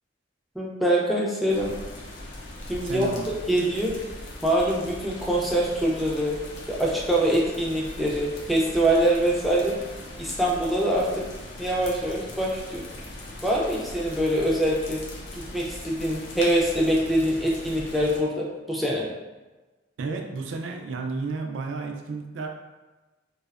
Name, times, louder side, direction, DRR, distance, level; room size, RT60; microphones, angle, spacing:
voice 1, 0.6-1.7 2.7-3.2 3.5-4.0 4.4-6.4 6.7-9.8 10.2-11.2 11.6-12.8 13.4-15.0 15.3-19.1, right 1 dB, ahead, -5 dB, 0.3 m, -24 dB
sound 1, 1.5-18.2, left 1 dB, 70° left, 0.4 m, -40 dB
voice 2, 2.8-3.4 20.0-22.5, right 4 dB, 80° right, 3 dB, 0.3 m, -32 dB
2.7 x 2.0 x 2.3 m, 1.2 s
head